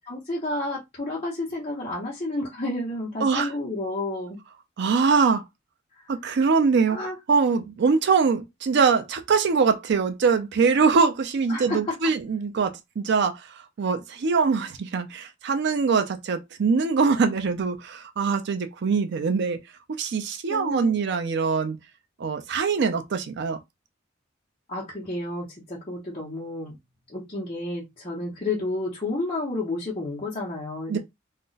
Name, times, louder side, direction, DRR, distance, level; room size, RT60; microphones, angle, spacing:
voice 1, 0.0-4.4 6.9-7.2 11.5-12.0 20.5-21.0 24.7-26.8 27.1-31.0, left 2 dB, 30° left, 0.8 m, -31 dB
voice 2, 4.8-5.4 6.1-7.0 7.3-13.4 13.8-19.6 20.0-21.8 22.2-23.6 30.9-31.0, right 5 dB, 60° right, 0.4 m, -23 dB
2.4 x 2.1 x 3.8 m
head